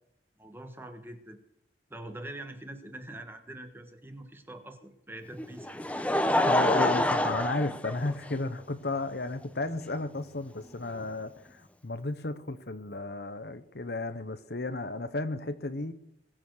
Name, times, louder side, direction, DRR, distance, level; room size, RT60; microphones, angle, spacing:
voice 1, 0.4-1.4 1.9-5.7, right 1 dB, 10° right, 1.5 m, -44 dB
Laughter, 5.4-8.6 9.4-9.5 11.0-11.1, left 1 dB, 10° left, 0.7 m, -27 dB
voice 2, 6.5-15.9, left 2 dB, 60° left, 1.0 m, -33 dB
21.0 x 7.2 x 6.5 m
head